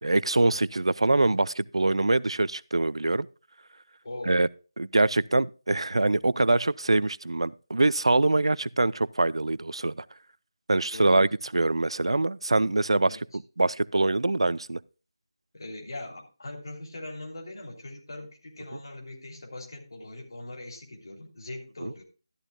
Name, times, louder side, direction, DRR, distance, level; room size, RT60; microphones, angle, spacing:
voice 1, 0.0-3.3 4.3-4.5 4.8-10.0 10.7-11.3 11.5-13.2 13.6-14.8 21.8-21.9, right 2 dB, 80° right, 0.5 m, -24 dB
voice 2, 4.0-4.4 10.9-11.2 13.0-13.2 15.5-22.0, left 2 dB, 50° left, 3.1 m, -41 dB
13.0 x 11.5 x 2.2 m
figure-of-eight pair, 170°, 3 cm